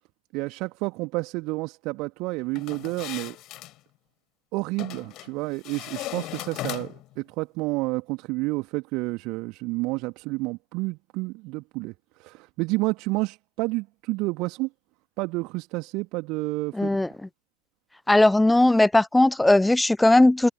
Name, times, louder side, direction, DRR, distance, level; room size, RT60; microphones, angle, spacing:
voice 1, 0.3-3.4 4.5-11.9 12.2-14.7 15.2-17.0, right 24 dB, 40° right, 2.4 m, -30 dB
sound 1, 2.6-3.7 4.8-5.3 5.6-7.1, left 17 dB, 35° left, 5.9 m, -37 dB
voice 2, 16.7-17.1 18.1-20.5, left 2 dB, 5° left, 0.5 m, -18 dB
figure-of-eight pair, 90°, 0 cm